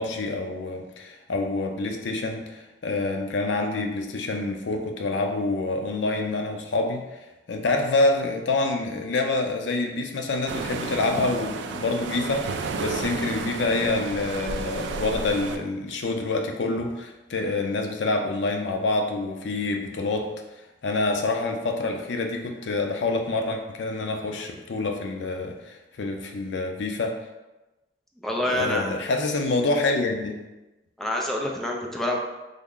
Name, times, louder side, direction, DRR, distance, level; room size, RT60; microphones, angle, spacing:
voice 1, 0.0-7.0 7.5-20.3 20.8-27.2 28.5-30.4, left 2 dB, 85° left, 3 dB, 0.5 m, -27 dB
sound 1, 10.5-15.6, right 4 dB, 75° right, 0.3 m, -32 dB
voice 2, 28.2-28.9 31.0-32.2, left 1 dB, ahead, -1 dB, 0.4 m, -27 dB
3.4 x 2.1 x 3.6 m, 1.0 s
head